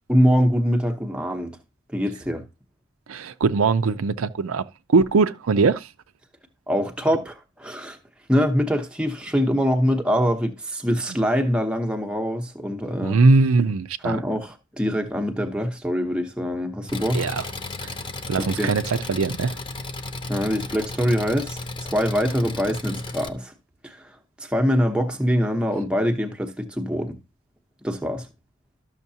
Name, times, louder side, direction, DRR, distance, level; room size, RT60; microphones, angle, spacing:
voice 1, 0.1-1.6 1.9-2.4 6.7-8.0 8.3-13.2 14.0-17.3 18.4-18.7 20.3-23.5 23.8-27.2 27.8-28.3, equal, 5° right, 0.8 m, -24 dB
voice 2, 3.1-4.6 4.9-5.9 13.0-14.2 17.1-17.4 17.8-17.9 18.3-19.6, right 4 dB, 80° right, 0.5 m, -20 dB
Engine, 16.9-23.3, left 3 dB, 25° left, 0.5 m, -34 dB
12.0 x 6.4 x 2.7 m
head